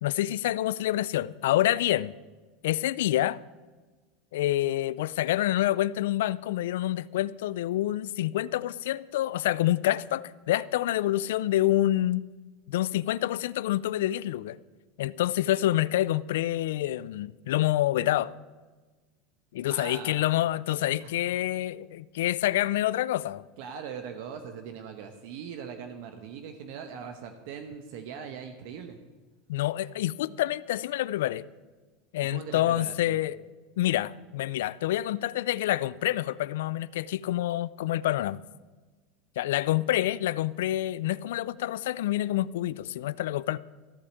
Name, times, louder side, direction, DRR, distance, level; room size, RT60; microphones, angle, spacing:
voice 1, 0.0-2.1 2.6-3.4 4.3-12.2 12.7-14.6 15.0-18.3 19.5-23.4 29.5-31.4 32.1-33.4 33.8-38.4 39.4-43.6, left 14 dB, 85° left, 0.3 m, -27 dB
voice 2, 19.7-20.3 21.0-21.3 23.6-29.0 32.2-33.2, right 7 dB, 65° right, 1.0 m, -41 dB
14.5 x 5.0 x 8.5 m
supercardioid pair, 135°, 0 cm